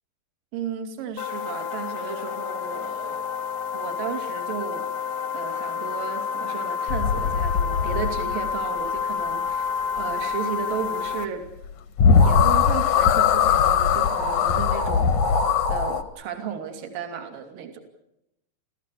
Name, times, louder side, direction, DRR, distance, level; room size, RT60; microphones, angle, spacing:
voice 1, 0.5-3.2 3.7-4.8 5.3-11.5 12.1-15.2 15.7-17.8, right 7 dB, 55° right, 5 dB, 3.9 m, -34 dB
sound 1, 1.2-11.3, left 6 dB, 80° left, 3.5 m, -29 dB
sound 2, 6.9-8.5 11.6-11.7 12.0-16.0, left 6 dB, 60° left, 2.3 m, -20 dB
30.0 x 15.0 x 8.4 m, 0.84 s
omnidirectional pair, 5.1 m